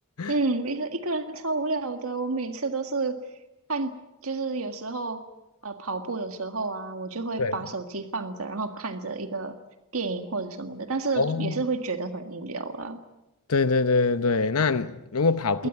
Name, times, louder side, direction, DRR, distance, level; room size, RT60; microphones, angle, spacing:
voice 1, 0.3-3.2 3.7-4.0 4.2-5.2 5.6-9.6 9.9-13.0 15.6-15.7, right 3 dB, 70° right, 1.8 m, -30 dB
voice 2, 11.2-11.6 13.5-15.7, left 4 dB, 80° left, 0.8 m, -24 dB
22.0 x 19.0 x 9.4 m
head